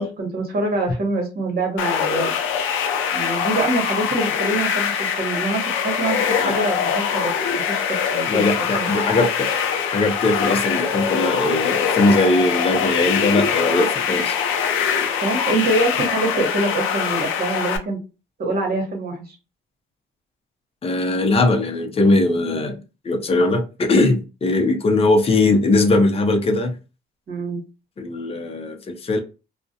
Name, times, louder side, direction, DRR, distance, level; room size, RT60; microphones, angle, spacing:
voice 1, 0.0-2.3 3.1-7.3 7.7-8.4 8.7-8.9 15.2-18.0 18.4-19.2 27.3-27.6, right 2 dB, 50° right, 1.0 m, -25 dB
sound 1, 1.8-17.8, left 7 dB, 90° left, 0.4 m, -23 dB
voice 2, 8.3-14.4 20.8-26.7 28.0-29.2, left 2 dB, 30° left, 0.5 m, -20 dB
2.3 x 2.1 x 2.6 m
cardioid pair, 90°, 20 cm